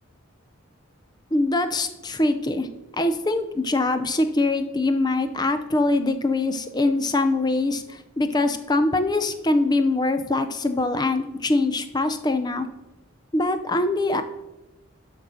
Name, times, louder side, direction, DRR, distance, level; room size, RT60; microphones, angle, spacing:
voice 1, 1.3-2.7 3.0-12.7 13.3-14.2, left 2 dB, 20° left, 9 dB, 0.5 m, -23 dB
7.6 x 5.4 x 6.2 m, 0.99 s
head